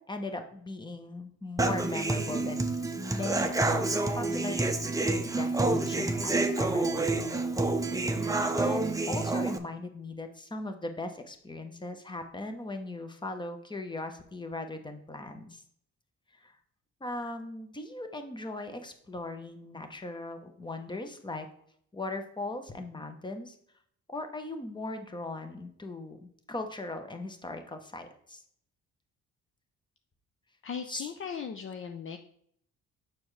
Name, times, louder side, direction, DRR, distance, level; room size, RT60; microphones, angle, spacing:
voice 1, 0.0-2.7 2.9-3.8 4.1-4.6 5.0-7.5 7.9-15.6 16.4-16.5 17.0-21.5 21.9-23.6 24.1-28.4 30.9-31.1, left 2 dB, 15° left, 7 dB, 1.1 m, -38 dB
Human voice / Acoustic guitar, 1.6-9.6, right 2 dB, 10° right, 0.7 m, -28 dB
voice 2, 30.6-32.2, left 7 dB, 45° left, 6 dB, 0.6 m, -38 dB
6.9 x 6.0 x 3.3 m, 0.66 s
cardioid pair, 90°, 30 cm